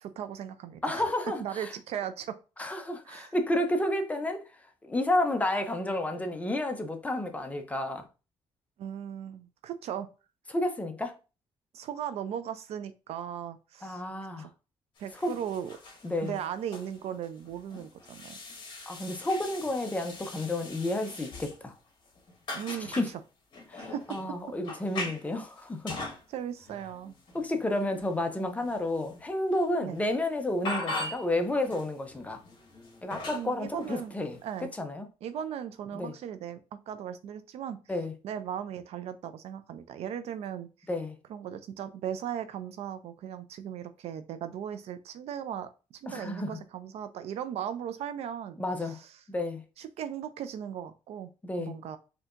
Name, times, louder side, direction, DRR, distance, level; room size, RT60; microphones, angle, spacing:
voice 1, 0.0-1.1 1.4-2.4 3.0-3.3 8.8-10.1 11.7-14.0 14.4-14.5 15.0-15.8 16.2-18.4 22.5-23.2 23.8-24.2 26.3-27.2 29.8-30.0 33.3-34.1 34.4-34.7 35.2-37.8 38.2-40.9 41.3-49.1 49.8-51.3 51.6-52.0, right 9 dB, 65° right, 0.4 m, -37 dB
voice 2, 0.8-1.7 2.6-4.4 4.8-8.0 10.5-11.1 13.8-14.5 15.2-15.3 16.0-16.3 18.9-21.7 22.9-23.1 23.7-26.0 27.3-32.4 33.0-34.4 34.8-35.1 35.9-36.1 37.9-38.1 40.9-41.1 46.1-46.6 48.6-49.0 49.3-49.6 51.4-51.7, left 1 dB, 15° left, 0.6 m, -31 dB
sound 1, 15.0-21.8 22.0-23.1 23.5-26.2 26.6-29.2 29.5-29.7 29.9-30.1 30.6-31.3 31.6-34.6, left 2 dB, 45° left, 1.4 m, -41 dB
4.3 x 2.8 x 2.5 m
cardioid pair, 130°, 11 cm